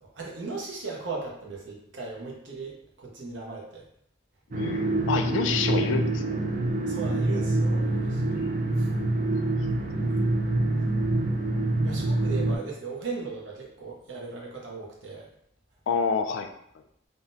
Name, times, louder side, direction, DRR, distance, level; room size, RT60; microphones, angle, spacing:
voice 1, 0.0-3.9 6.8-8.4 8.8-8.9 10.1-10.2 11.8-15.3, right 4 dB, 70° right, -2 dB, 0.8 m, -37 dB
voice 2, 4.5-6.4 8.4-8.5 15.9-16.5, left 5 dB, 70° left, 7 dB, 0.3 m, -28 dB
sound 1, 4.5-12.6, right 2 dB, 45° right, 0.4 m, -26 dB
3.5 x 2.1 x 2.6 m, 0.72 s
head